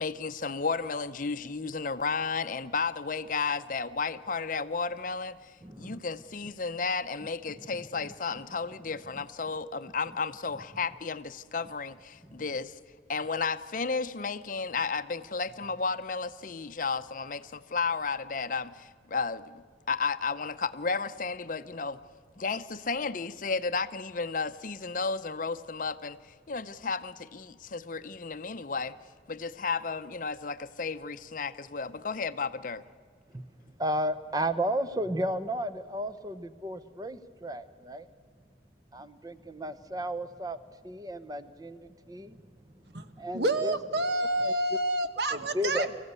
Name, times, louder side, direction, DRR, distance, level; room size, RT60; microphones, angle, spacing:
voice 1, 0.0-12.8 13.1-22.0 22.4-29.0 29.3-32.8, left 4 dB, 45° left, 12 dB, 0.6 m, -33 dB
voice 2, 5.6-6.0 8.3-8.4 12.3-12.4 33.3-33.4 33.8-38.1 38.9-40.6 40.8-42.4 43.2-43.8 44.4-44.5 45.3-45.9, equal, 20° right, 12 dB, 0.8 m, -33 dB
voice 3, 42.9-46.0, right 1 dB, 65° right, 10 dB, 1.2 m, -29 dB
24.5 x 15.5 x 8.2 m, 2.1 s
head